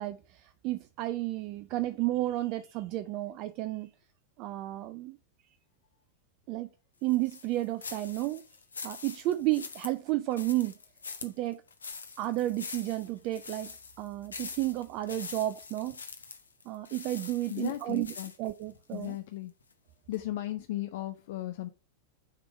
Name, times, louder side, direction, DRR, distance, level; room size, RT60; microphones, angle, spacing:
voice 1, 0.0-3.9 4.4-5.2 6.5-6.7 7.0-8.4 8.8-10.8 11.2-11.6 12.2-13.7 14.0-16.0 16.7-18.1 18.4-19.2, right 16 dB, 40° right, 0.3 m, -32 dB
sound 1, 7.1-19.2 19.6-19.7 20.1-20.2, left 5 dB, 75° left, 0.8 m, -44 dB
voice 2, 17.5-18.3 18.9-19.5 20.1-21.7, left 15 dB, 55° left, 0.5 m, -36 dB
6.5 x 3.5 x 4.6 m
figure-of-eight pair, 90°, 0 cm